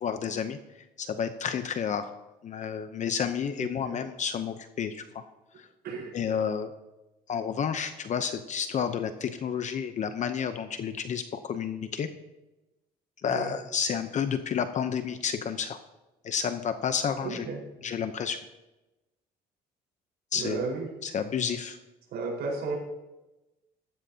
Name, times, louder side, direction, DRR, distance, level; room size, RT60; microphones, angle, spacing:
voice 1, 0.0-2.1 2.4-5.2 5.6-5.7 6.1-6.7 7.3-12.1 13.2-15.8 16.2-17.5 17.8-18.4 20.3-20.6 21.0-21.8, left 7 dB, 45° left, 9 dB, 0.7 m, -30 dB
voice 2, 3.6-4.0 5.8-6.1 13.3-13.6 17.2-17.6 20.3-20.9 22.1-22.8, right 4 dB, 75° right, -2 dB, 4.6 m, -34 dB
15.0 x 13.5 x 2.8 m, 1.0 s
cardioid pair, 110°, 17 cm